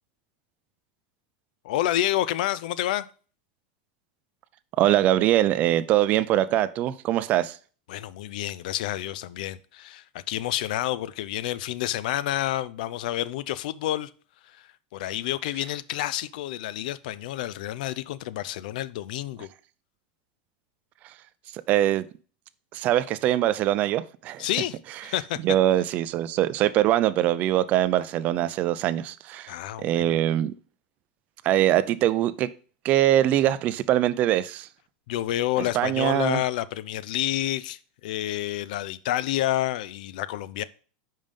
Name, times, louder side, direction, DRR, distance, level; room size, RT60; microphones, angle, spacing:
voice 1, 1.6-3.1 7.9-14.1 14.5-19.5 24.4-25.4 29.5-30.2 35.1-40.6, left 14 dB, 70° left, 0.4 m, -29 dB
voice 2, 4.8-7.6 21.5-22.1 22.7-24.5 25.4-29.5 29.8-30.5 31.4-32.5 32.8-34.7 35.7-36.4, right 13 dB, 35° right, 0.4 m, -23 dB
5.4 x 5.3 x 5.2 m
supercardioid pair, 155°, 5 cm